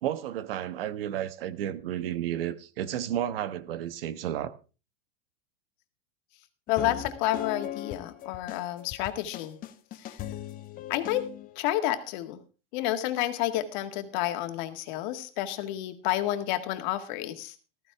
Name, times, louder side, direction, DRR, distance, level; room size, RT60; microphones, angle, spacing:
voice 1, 0.0-4.6, right 11 dB, 70° right, 1.4 m, -32 dB
voice 2, 6.7-9.6 9.9-10.2 10.9-11.3 11.6-12.4 12.7-17.6, left 13 dB, 50° left, 1.9 m, -30 dB
sound 1, 6.7-11.6, left 12 dB, 30° left, 1.2 m, -39 dB
14.5 x 14.5 x 3.5 m
supercardioid pair, 140°, 30 cm